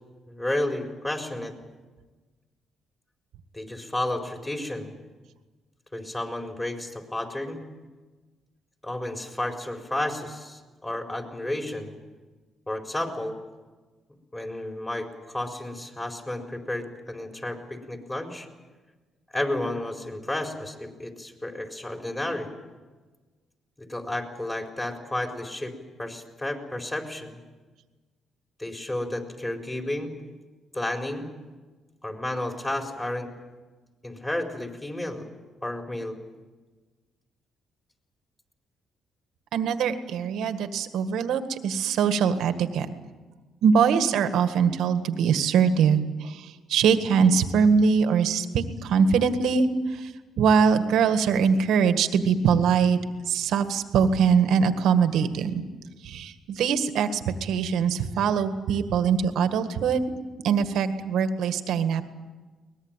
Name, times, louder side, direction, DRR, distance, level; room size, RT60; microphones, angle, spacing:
voice 1, 0.3-1.5 3.5-4.9 5.9-7.6 8.8-11.9 12.7-13.4 14.3-18.5 19.3-22.5 23.8-25.7 26.0-27.4 28.6-30.1 30.7-31.3 32.0-33.3 34.0-35.3 35.6-36.2, left 1 dB, 15° left, 3 dB, 4.4 m, -32 dB
voice 2, 39.5-42.9 43.6-49.7 49.9-50.1 50.4-53.0 53.3-55.6 56.0-60.1 60.4-62.0, right 6 dB, 80° right, 9 dB, 1.8 m, -22 dB
23.0 x 20.0 x 9.1 m, 1.3 s
cardioid pair, 90°, 0 cm